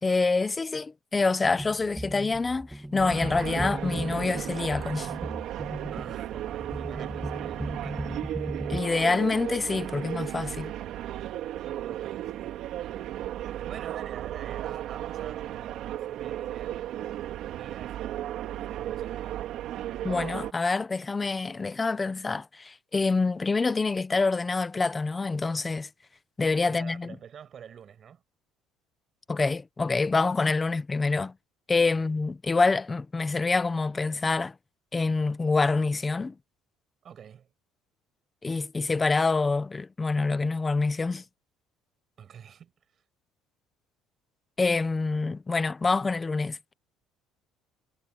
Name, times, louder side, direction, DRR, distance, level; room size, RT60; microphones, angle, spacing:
voice 1, 0.0-5.1 8.7-10.7 20.0-25.9 26.4-27.1 29.3-31.3 31.7-34.5 34.9-36.3 38.4-41.2 44.6-46.7, left 3 dB, 15° left, 0.8 m, -26 dB
sound 1, 1.4-8.8, right 1 dB, 5° right, 2.2 m, -37 dB
sound 2, 3.0-20.5, right 12 dB, 50° right, 3.4 m, -35 dB
voice 2, 5.9-8.0 10.5-10.8 11.7-12.6 13.4-16.9 17.3-19.5 26.7-28.2 31.9-32.1 37.0-37.5 42.2-43.0, right 8 dB, 30° right, 7.7 m, -48 dB
cardioid pair, 180°, 0 cm